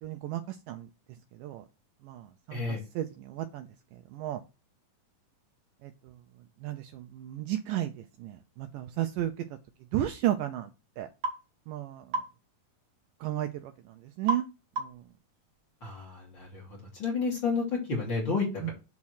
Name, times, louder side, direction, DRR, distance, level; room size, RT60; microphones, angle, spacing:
voice 1, 0.0-0.9 1.3-1.6 2.0-3.7 4.1-4.4 5.8-6.1 6.6-9.5 9.9-10.7 11.0-11.1 11.7-12.1 13.2-14.5 14.8-15.0 18.6-18.7, right 13 dB, 80° right, 7 dB, 2.1 m, -33 dB
voice 2, 2.5-2.8 15.8-18.4, left 4 dB, 35° left, -3 dB, 3.2 m, -31 dB
sound 1, 11.2-11.4 12.1-12.3 14.3-14.5 14.8-15.1, right 2 dB, 55° right, 1.5 m, -31 dB
7.2 x 4.2 x 6.4 m, 0.29 s
omnidirectional pair, 4.2 m